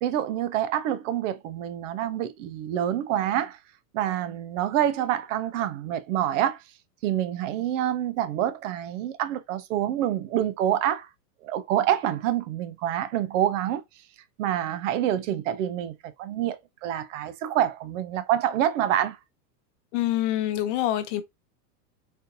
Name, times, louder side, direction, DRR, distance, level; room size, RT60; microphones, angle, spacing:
voice 1, 0.0-3.6 3.9-6.6 7.0-11.1 11.4-13.8 14.4-19.2, right 11 dB, 50° right, 0.7 m, -27 dB
voice 2, 19.9-21.2, left 13 dB, 45° left, 0.8 m, -26 dB
4.3 x 2.6 x 2.6 m
supercardioid pair, 135°, 49 cm